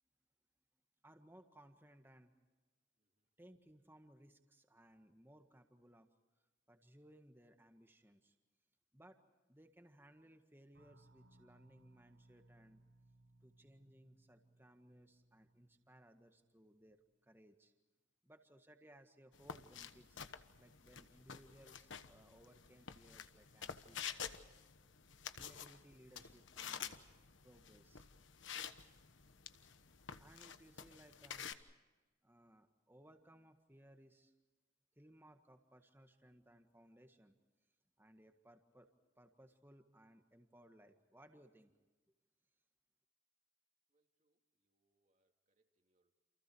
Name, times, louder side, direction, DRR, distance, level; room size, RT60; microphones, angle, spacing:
voice 1, 1.0-2.3 3.4-6.1 6.7-8.4 8.9-9.2 9.5-12.8 13.4-17.0 17.2-17.7 18.2-20.2 20.6-24.1 25.3-27.0 27.4-28.1 30.2-31.5 32.2-34.3 34.9-37.4 38.0-38.9 39.2-41.7, right 1 dB, 10° right, 6 dB, 1.7 m, -63 dB
sound 1, 10.7-17.1, right 2 dB, 65° right, 1.5 m, -68 dB
sound 2, 19.3-31.5, left 7 dB, 75° left, 1.2 m, -50 dB
voice 2, 43.9-46.1, right 2 dB, 40° right, 3 dB, 2.8 m, -85 dB
29.5 x 28.5 x 4.8 m, 1.2 s
head